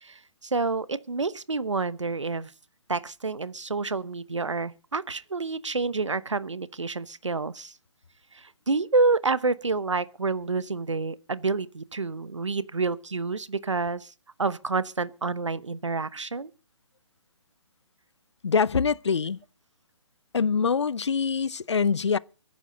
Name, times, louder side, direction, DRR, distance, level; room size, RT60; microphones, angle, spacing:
voice 1, 0.0-2.5 2.9-7.7 8.3-14.1 14.4-16.5, right 3 dB, 80° right, 1.0 m, -28 dB
voice 2, 18.4-19.4 20.3-22.2, left 5 dB, 70° left, 0.7 m, -24 dB
22.5 x 10.5 x 4.0 m
figure-of-eight pair, 135°, 15 cm